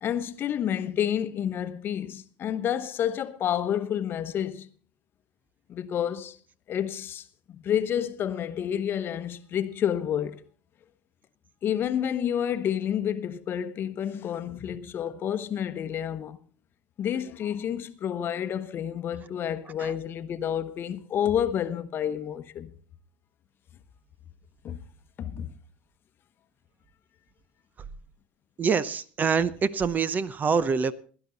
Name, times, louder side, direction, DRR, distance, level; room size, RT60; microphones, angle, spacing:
voice 1, 0.0-4.7 5.7-6.4 6.7-10.4 11.6-16.4 17.0-22.7 24.6-24.8 25.2-25.5, left 9 dB, 45° left, 1.0 m, -29 dB
voice 2, 28.6-30.9, right 5 dB, 30° right, 0.8 m, -25 dB
17.0 x 11.0 x 4.0 m
hypercardioid pair, 85°, 5 cm